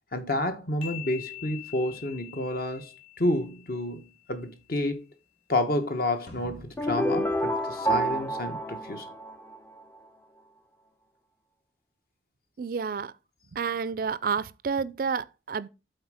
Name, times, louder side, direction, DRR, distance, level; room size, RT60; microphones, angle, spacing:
voice 1, 0.1-2.9 3.2-5.0 5.5-9.1, left 1 dB, 55° left, 1.2 m, -30 dB
sound 1, 0.8-4.3, left 16 dB, 30° left, 2.4 m, -44 dB
sound 2, 6.3-8.7, left 1 dB, 80° left, 3.2 m, -50 dB
sound 3, 6.8-9.8, right 1 dB, 10° left, 0.4 m, -28 dB
voice 2, 12.6-13.1 13.5-15.7, right 6 dB, 50° right, 0.4 m, -30 dB
7.9 x 4.0 x 4.9 m
head